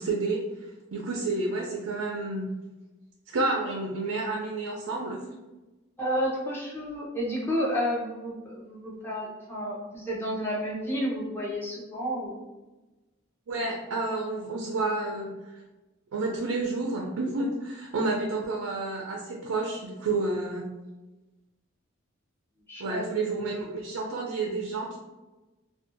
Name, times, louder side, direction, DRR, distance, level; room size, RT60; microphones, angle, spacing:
voice 1, 0.0-2.5 3.3-5.2 13.5-15.6 16.1-20.7 22.8-25.0, right 3 dB, 80° right, -1 dB, 0.4 m, -30 dB
voice 2, 6.0-12.4 22.7-23.0, equal, 10° left, -5 dB, 0.6 m, -31 dB
2.6 x 2.3 x 2.5 m, 1.1 s
head